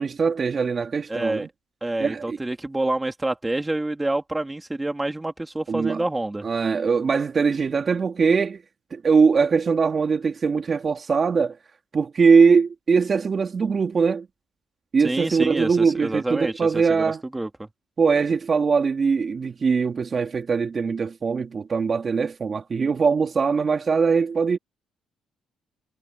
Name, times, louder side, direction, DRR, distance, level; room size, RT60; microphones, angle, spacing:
voice 1, 0.0-1.5 2.0-2.4 5.7-6.0 6.4-8.6 8.9-11.6 11.9-14.3 14.9-17.2 18.0-24.6, right 5 dB, 35° right, 2.4 m, -21 dB
voice 2, 1.1-1.5 1.8-6.4 15.0-17.7, right 2 dB, 15° right, 2.8 m, -27 dB
cardioid pair, 100°, 0 cm